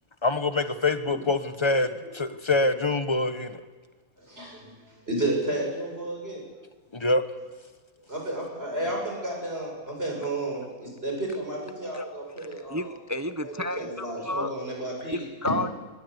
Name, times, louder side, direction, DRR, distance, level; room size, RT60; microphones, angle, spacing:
voice 1, 0.2-3.6 6.9-7.2, left 2 dB, 20° left, 9 dB, 1.1 m, -25 dB
voice 2, 4.2-6.4 8.1-12.9 13.4-15.3, right 1 dB, 40° right, 0 dB, 7.4 m, -32 dB
voice 3, 12.4-14.5 15.1-15.7, left 1 dB, 20° right, 10 dB, 0.5 m, -31 dB
20.5 x 20.5 x 8.2 m, 1.3 s
omnidirectional pair, 1.5 m